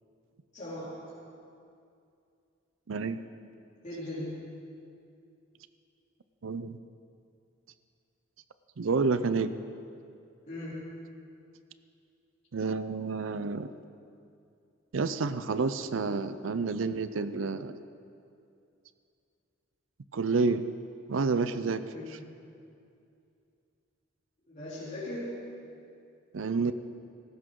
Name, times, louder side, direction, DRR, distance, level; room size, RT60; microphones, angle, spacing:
voice 1, 0.5-1.1 3.8-4.6 10.4-11.0 21.9-22.3 24.5-25.5, left 1 dB, 40° left, -9 dB, 3.2 m, -39 dB
voice 2, 2.9-3.2 6.4-6.8 8.8-9.6 12.5-13.7 14.9-17.8 20.1-20.6 21.1-21.9 26.3-26.7, right 4 dB, 75° right, 12 dB, 0.5 m, -29 dB
18.5 x 15.0 x 3.8 m, 2.5 s
head